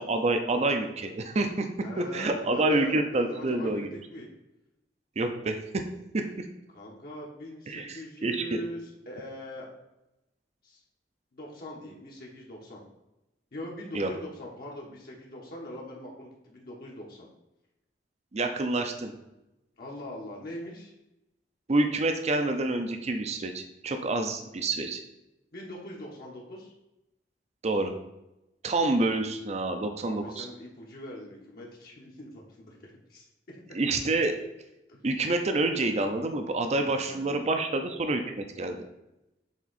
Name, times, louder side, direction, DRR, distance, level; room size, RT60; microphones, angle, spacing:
voice 1, 0.0-1.7 2.0-3.9 5.2-5.8 6.1-6.2 7.7-8.6 13.9-14.1 18.3-19.1 21.7-25.0 27.6-27.9 28.6-30.5 33.7-34.3 35.0-38.9, right 2 dB, 40° right, 6 dB, 0.5 m, -28 dB
voice 2, 1.8-4.3 6.7-9.7 10.6-10.8 11.3-12.8 13.5-17.3 19.8-20.9 25.5-26.7 30.0-33.6 34.9-35.0 36.8-37.6, left 1 dB, 60° left, -3 dB, 1.1 m, -42 dB
7.3 x 3.6 x 4.1 m, 0.92 s
head